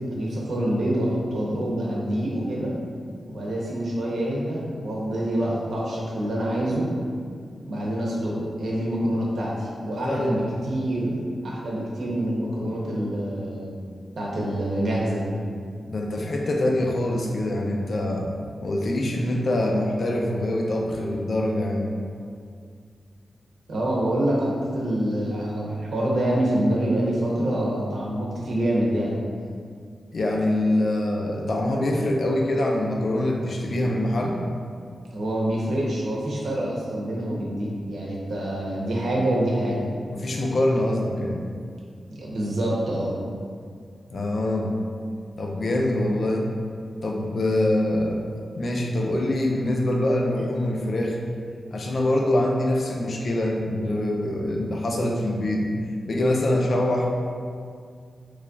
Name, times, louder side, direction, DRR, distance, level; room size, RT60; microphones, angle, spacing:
voice 1, 0.1-2.7 3.3-6.9 7.6-11.2 11.4-13.8 14.2-15.3 23.7-29.2 35.1-39.9 42.1-43.1, right 1 dB, 70° right, -4 dB, 0.7 m, -26 dB
voice 2, 9.9-10.4 15.9-18.3 18.6-22.0 30.1-34.4 40.1-41.4 44.1-44.8 45.4-46.4 47.0-48.2 48.5-51.2 51.7-55.7 56.1-57.1, left 1 dB, 50° left, 0 dB, 0.4 m, -24 dB
3.2 x 2.3 x 3.8 m, 2.2 s
wide cardioid pair, 160°, 0 cm